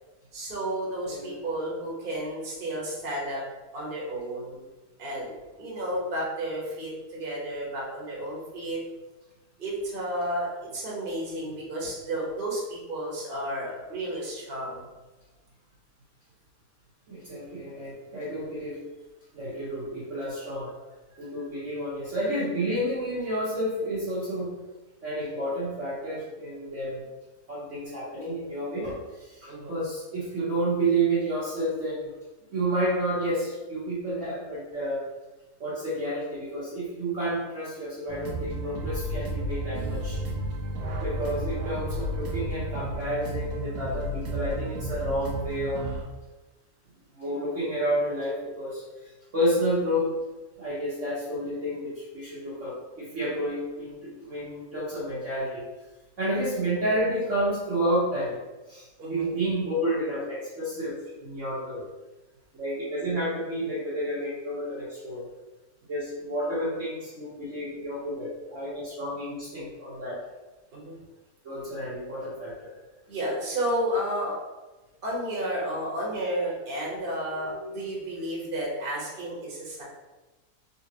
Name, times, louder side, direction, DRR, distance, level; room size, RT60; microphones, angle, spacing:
voice 1, 0.3-3.4 3.7-4.6 5.0-8.8 9.6-14.8 29.5-29.8 59.0-59.3 70.7-70.9 73.1-74.3 75.0-79.8, right 1 dB, 35° right, -5 dB, 1.2 m, -32 dB
voice 2, 17.1-18.8 19.3-20.7 21.2-24.6 25.0-27.1 27.5-32.1 32.5-35.0 35.6-40.2 41.0-45.8 47.1-50.1 50.6-55.7 56.2-58.3 58.7-61.8 62.5-65.3 65.9-70.2 71.4-72.7 77.5-78.1, right 1 dB, 55° right, -9 dB, 1.2 m, -30 dB
sound 1, 38.1-46.0, right 1 dB, 75° right, 1.3 m, -32 dB
3.9 x 3.6 x 2.9 m, 1.1 s
omnidirectional pair, 1.7 m